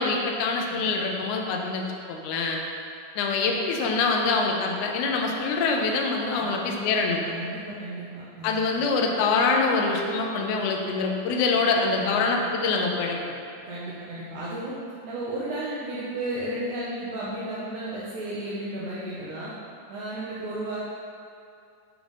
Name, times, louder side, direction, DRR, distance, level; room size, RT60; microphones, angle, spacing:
voice 1, 0.0-2.6 3.2-7.2 8.4-13.2, left 4 dB, 80° left, 1 dB, 1.9 m, -25 dB
voice 2, 6.4-6.8 7.2-8.8 12.0-12.3 13.7-14.8 15.0-19.5 19.9-20.8, right 1 dB, 75° right, -8 dB, 2.0 m, -33 dB
7.2 x 3.4 x 5.1 m, 2.5 s
omnidirectional pair, 3.9 m